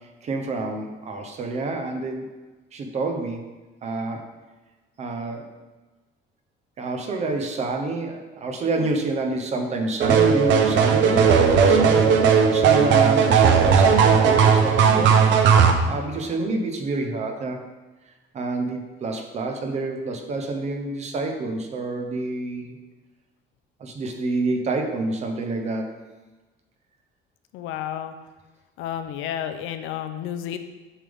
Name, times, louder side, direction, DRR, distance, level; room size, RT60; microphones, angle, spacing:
voice 1, 0.2-2.3 2.7-3.5 3.8-4.3 5.0-5.5 6.8-15.2 15.9-17.6 18.3-22.8 23.8-25.9, right 2 dB, 35° right, 4 dB, 0.7 m, -28 dB
sound 1, 10.0-15.7, right 6 dB, 65° right, 0.7 m, -16 dB
voice 2, 27.5-28.1 28.8-30.6, left 10 dB, 75° left, 8 dB, 0.6 m, -31 dB
7.2 x 5.2 x 3.5 m, 1.2 s
cardioid pair, 165°, 20 cm